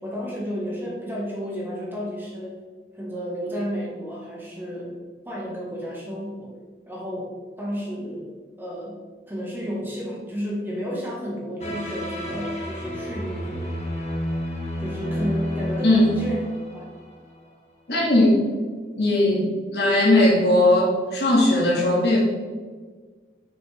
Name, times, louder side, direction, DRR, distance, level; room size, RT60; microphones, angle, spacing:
voice 1, 0.0-2.6 2.9-5.0 5.2-6.5 6.9-8.3 8.6-9.0 9.3-13.6 14.8-16.4 16.7-16.9, equal, 10° right, -4 dB, 1.5 m, -32 dB
sound 1, 11.6-17.4, equal, 35° left, 1.3 m, -30 dB
voice 2, 17.9-18.4 19.0-19.5 19.7-22.2, left 1 dB, 70° left, -1 dB, 1.9 m, -18 dB
6.8 x 6.2 x 3.4 m, 1.4 s
head